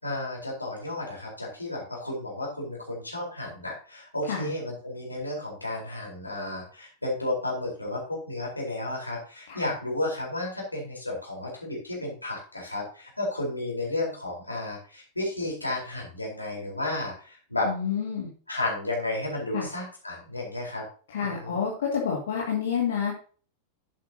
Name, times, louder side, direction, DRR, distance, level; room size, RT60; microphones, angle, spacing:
voice 1, 0.0-17.7 18.5-20.8 21.2-21.6, left 2 dB, 85° left, -2 dB, 4.2 m, -32 dB
voice 2, 17.6-18.3 19.5-19.7 21.1-23.1, left 7 dB, 60° left, -1 dB, 2.1 m, -29 dB
11.0 x 8.3 x 2.8 m, 0.40 s
figure-of-eight pair, 90°, 0 cm